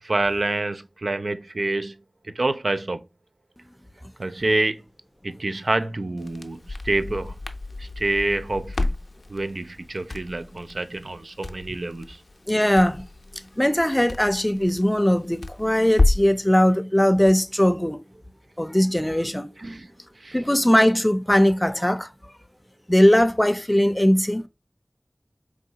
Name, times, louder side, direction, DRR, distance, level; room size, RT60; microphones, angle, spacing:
voice 1, 0.0-2.0 2.2-3.0 4.2-4.8 5.2-7.3 7.8-8.9 9.3-12.2 19.6-19.9 20.2-20.4, right 2 dB, 80° right, 0.4 m, -27 dB
Crackle, 6.2-16.4, left 2 dB, 75° left, 0.5 m, -30 dB
voice 2, 12.5-13.0 13.6-18.0 18.6-19.5 20.3-22.1 22.9-24.5, equal, 15° left, 0.5 m, -20 dB
4.6 x 3.0 x 2.7 m
wide cardioid pair, 45°, 0 cm